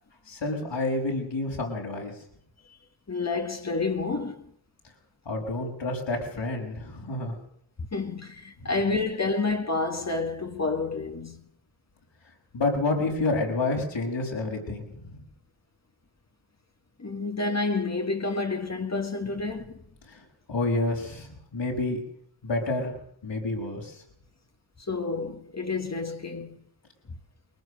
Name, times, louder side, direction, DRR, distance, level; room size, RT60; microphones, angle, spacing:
voice 1, 0.3-2.1 5.2-7.4 8.6-8.7 12.5-15.1 20.1-20.2 20.5-22.0 22.4-22.9 23.2-24.0, left 2 dB, 70° left, 6.3 m, -29 dB
voice 2, 3.1-4.5 7.9-11.5 17.0-19.7 24.9-26.6, left 3 dB, 35° left, 1.9 m, -29 dB
22.0 x 18.5 x 6.6 m
cardioid pair, 65°, 46 cm